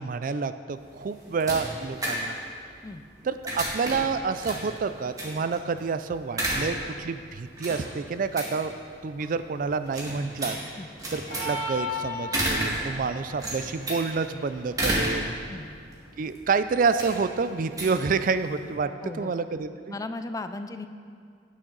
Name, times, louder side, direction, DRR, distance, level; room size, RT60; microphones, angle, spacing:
voice 1, 0.0-2.4 3.2-8.7 9.0-10.6 11.1-15.3 16.2-18.9 19.2-20.0, right 5 dB, 50° right, 11 dB, 0.4 m, -28 dB
sound 1, 0.8-18.7, right 1 dB, 20° right, 1.9 m, -33 dB
sound 2, 11.3-12.7, left 2 dB, 60° left, 2.3 m, -32 dB
voice 2, 19.0-19.3 19.9-20.9, left 2 dB, 20° left, 9 dB, 0.3 m, -36 dB
16.5 x 6.4 x 3.9 m, 2.3 s
head